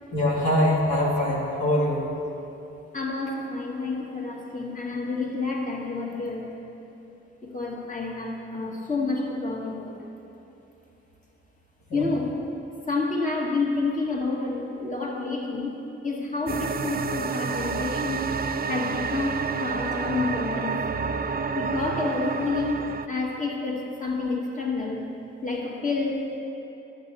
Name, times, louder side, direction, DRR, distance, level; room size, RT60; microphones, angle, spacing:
voice 1, 0.1-2.0 11.9-12.1, left 1 dB, 75° left, -5 dB, 1.9 m, -23 dB
voice 2, 2.9-6.6 7.4-10.0 11.9-12.4 12.9-18.3 18.7-20.8 21.5-25.0 25.4-26.4, left 3 dB, 25° left, -2 dB, 1.9 m, -29 dB
sound 1, 16.5-23.1, right 5 dB, 30° right, 0.4 m, -29 dB
10.5 x 8.1 x 4.2 m, 2.9 s
hypercardioid pair, 40°, 29 cm